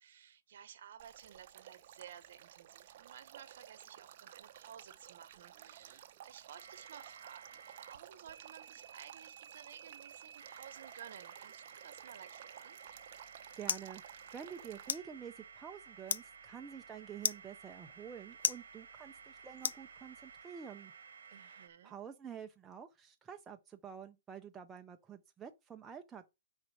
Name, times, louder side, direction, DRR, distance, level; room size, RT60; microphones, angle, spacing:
voice 1, 0.0-12.8 21.3-22.0, right 9 dB, 55° right, 1.1 m, -55 dB
Male speech man speaking / Stream / Trickle dribble, 1.0-14.9, right 11 dB, 35° right, 0.7 m, -55 dB
sound 1, 6.6-8.0 8.3-21.7, right 6 dB, 80° right, 0.9 m, -54 dB
sound 2, 12.9-20.4, left 7 dB, 70° left, 0.6 m, -41 dB
voice 2, 13.6-20.9 21.4-26.3, right 7 dB, 10° right, 0.4 m, -49 dB
6.5 x 5.1 x 5.7 m
hypercardioid pair, 170°, 0 cm